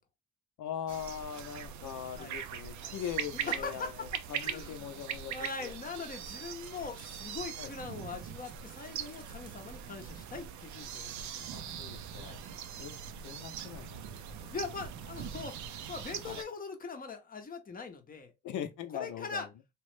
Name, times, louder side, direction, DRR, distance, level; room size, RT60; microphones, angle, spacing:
voice 1, 0.6-5.3 5.6-5.8 7.6-7.7 11.5-12.4 12.8-14.5 16.2-16.4 18.4-19.5, left 9 dB, 75° left, 0.6 m, -41 dB
sound 1, 0.9-16.4, right 8 dB, 70° right, 0.5 m, -41 dB
voice 2, 1.8-2.4 2.8-3.0 3.3-4.1 4.4-5.0 5.3-11.5 12.2-12.4 14.5-15.6 15.9-18.3 18.9-19.5, left 4 dB, 30° left, 0.6 m, -42 dB
3.0 x 2.0 x 3.0 m
cardioid pair, 90°, 30 cm